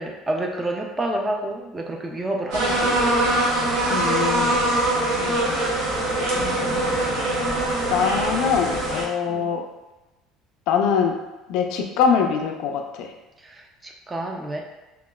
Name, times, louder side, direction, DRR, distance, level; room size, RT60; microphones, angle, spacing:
voice 1, 0.0-3.0 5.2-5.5 9.3-9.6 13.4-14.6, right 1 dB, 15° right, 1 dB, 0.3 m, -29 dB
sound 1, 2.5-9.0, right 1 dB, 75° right, 0.8 m, -23 dB
voice 2, 3.9-4.6 5.6-5.9 6.2-9.6 10.7-11.2 11.5-13.1, left 6 dB, 70° left, 4 dB, 0.3 m, -24 dB
2.9 x 2.3 x 2.2 m, 1.0 s
cardioid pair, 140°, 0 cm